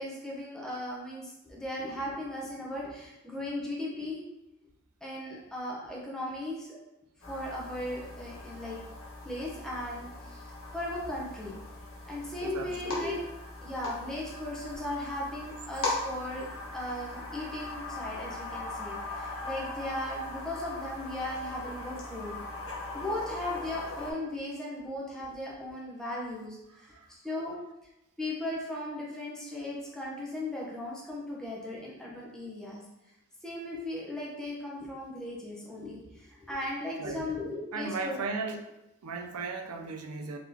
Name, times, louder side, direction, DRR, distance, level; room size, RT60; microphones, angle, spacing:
voice 1, 0.0-4.2 5.0-6.7 7.3-8.8 9.2-10.4 10.7-11.6 12.1-13.2 13.6-16.4 16.7-22.3 22.9-26.9 27.2-27.6 28.2-32.8 33.4-38.2, left 1 dB, 5° left, -5 dB, 0.7 m, -37 dB
sound 1, 7.2-24.1, left 2 dB, 65° left, 1.3 m, -40 dB
voice 2, 12.4-13.1 26.9-27.5 37.0-37.3 37.7-38.6 39.0-40.4, right 4 dB, 85° right, 4 dB, 0.5 m, -37 dB
3.9 x 3.6 x 2.8 m, 0.92 s
head